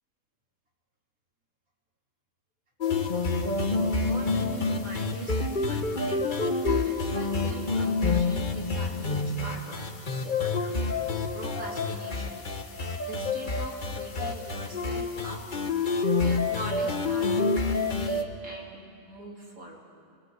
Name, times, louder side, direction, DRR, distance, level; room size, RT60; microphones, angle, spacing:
sound 1, 2.8-18.2, left 3 dB, 35° left, 1.3 m, -28 dB
voice 1, 3.8-6.2 6.6-9.9 10.2-11.0 11.3-15.4 16.2-18.8 19.1-19.8, right 1 dB, 80° right, -3 dB, 4.2 m, -42 dB
26.0 x 19.0 x 8.2 m, 2.2 s
omnidirectional pair, 1.5 m